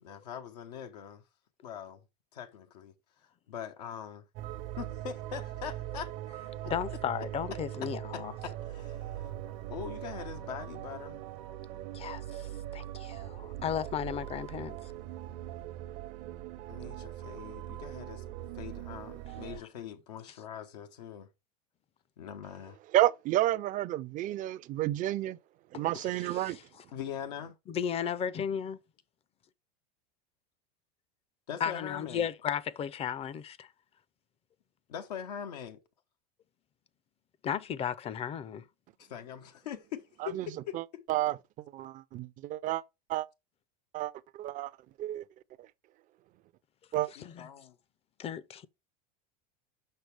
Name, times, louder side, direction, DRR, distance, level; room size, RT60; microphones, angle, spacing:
voice 1, 0.0-1.2 1.6-2.0 2.3-2.9 3.5-4.2 4.8-6.1 6.6-6.7 7.8-11.2 16.7-18.2 18.5-21.3 22.2-22.8 26.9-27.6 31.5-32.3 34.9-35.8 39.0-40.8 47.2-47.7, left 8 dB, 85° left, 1.0 m, -42 dB
sound 1, 4.4-19.6, right 13 dB, 60° right, 0.8 m, -41 dB
voice 2, 6.6-8.3 11.9-14.8 25.7-26.6 27.7-28.8 31.6-33.7 37.4-38.6 47.2-47.5 48.2-48.7, left 8 dB, 30° left, 0.6 m, -35 dB
voice 3, 22.9-25.4 25.7-26.6 40.4-40.5 40.7-40.8 41.1-41.4 41.7-42.8 43.1-43.3 43.9-44.1 44.4-44.7 45.0-45.2 46.9-47.1, right 15 dB, 40° right, 0.5 m, -30 dB
6.6 x 5.9 x 3.3 m
supercardioid pair, 105°, 20 cm